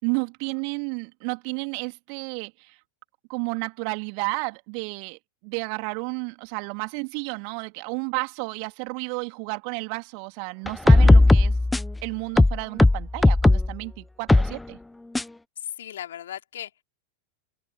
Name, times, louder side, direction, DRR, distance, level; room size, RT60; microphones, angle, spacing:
voice 1, 0.0-2.8 3.3-11.6 12.0-14.8, right 40 dB or more, 45° right, 3.0 m, -32 dB
sound 1, 10.7-12.0 12.4-13.7 14.3-14.5 15.1-15.2, left 2 dB, 5° left, 0.3 m, -16 dB
voice 2, 15.8-16.8, left 11 dB, 60° left, 4.7 m, -37 dB
open air
figure-of-eight pair, 90°, 0 cm